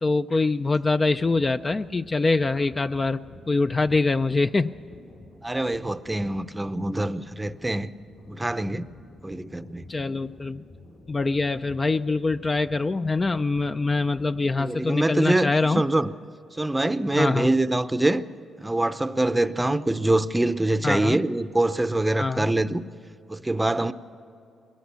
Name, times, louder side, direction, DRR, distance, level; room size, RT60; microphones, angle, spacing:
voice 1, 0.0-3.2 3.5-4.7 9.9-10.6 11.1-15.8 17.1-17.5 20.8-21.2 22.2-22.5, left 3 dB, 25° left, 0.4 m, -24 dB
sound 1, 0.7-15.0, left 2 dB, 65° left, 4.0 m, -49 dB
voice 2, 5.4-7.9 8.3-8.9 9.2-9.9 14.6-16.1 16.6-18.2 18.6-22.9 23.3-23.9, right 2 dB, 10° right, 0.6 m, -24 dB
21.5 x 18.0 x 6.9 m
cardioid pair, 95°, 0 cm